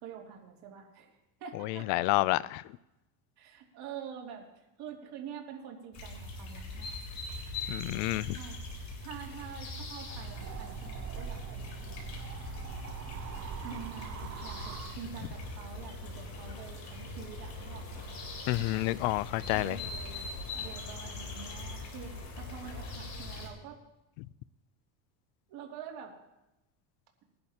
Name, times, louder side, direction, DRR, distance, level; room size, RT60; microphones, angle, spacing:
voice 1, 0.0-2.1 3.4-4.5 4.8-7.0 8.3-8.6 9.0-11.7 13.6-18.1 19.5-23.8 25.5-26.2, right 7 dB, 60° right, 2.8 m, -46 dB
voice 2, 1.6-2.6 7.7-8.4 18.5-19.8, left 19 dB, 70° left, 0.6 m, -29 dB
sound 1, 5.9-23.5, left 2 dB, 35° left, 3.5 m, -41 dB
sound 2, 10.1-15.5, right 9 dB, 35° right, 0.6 m, -43 dB
20.5 x 11.0 x 2.9 m
supercardioid pair, 115°, 45 cm